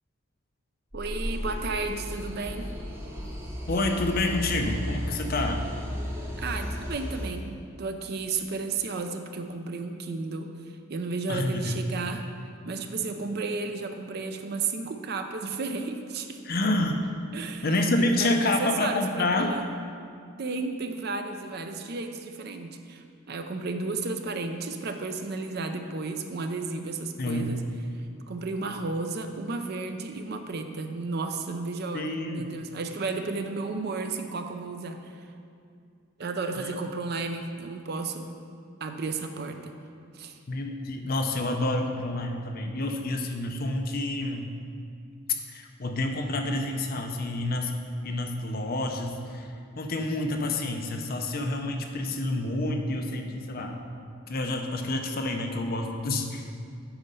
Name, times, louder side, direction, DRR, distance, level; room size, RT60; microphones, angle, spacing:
sound 1, 0.9-7.3, equal, 10° right, 0.8 m, -34 dB
voice 1, 0.9-2.6 6.4-10.5 10.9-12.2 12.6-16.4 17.3-17.7 18.0-19.6 20.4-27.6 28.3-35.2 36.2-38.4 38.8-39.7 40.1-40.4, right 3 dB, 50° right, 6 dB, 0.5 m, -33 dB
voice 2, 3.7-5.6 11.3-11.8 16.4-17.1 17.6-19.6 27.2-27.5 31.9-32.5 36.6-36.7 40.5-44.5 45.5-47.7 48.0-53.8 54.3-56.6, left 2 dB, 45° left, 4 dB, 0.6 m, -28 dB
8.8 x 4.1 x 5.4 m, 2.4 s
head